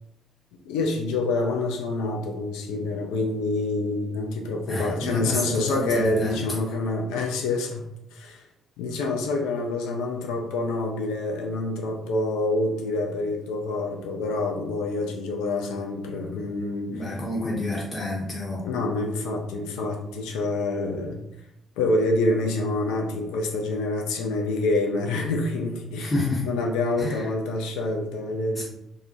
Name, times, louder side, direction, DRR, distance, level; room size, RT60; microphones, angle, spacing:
voice 1, 0.7-7.8 8.1-8.4 8.8-16.9 18.6-21.2 21.8-26.1 26.4-28.6, left 2 dB, 70° left, 2 dB, 0.3 m, -27 dB
voice 2, 4.7-6.4 16.9-18.6 26.0-26.5 27.0-27.3 28.6-28.7, left 2 dB, 30° left, -5 dB, 0.7 m, -29 dB
2.6 x 2.1 x 2.5 m, 0.81 s
figure-of-eight pair, 45°, 0 cm